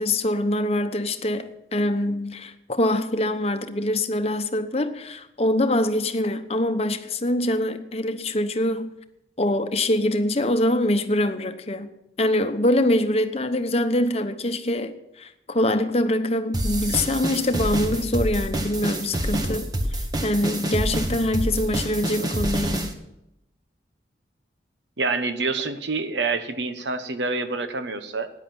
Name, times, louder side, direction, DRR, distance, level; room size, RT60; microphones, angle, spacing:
voice 1, 0.0-8.9 9.4-11.9 12.2-22.9, left 1 dB, 35° left, 0.9 m, -24 dB
sound 1, 16.5-22.9, right 1 dB, 20° right, 1.3 m, -27 dB
voice 2, 25.0-28.3, right 3 dB, 80° right, 1.2 m, -27 dB
14.5 x 10.0 x 6.2 m
head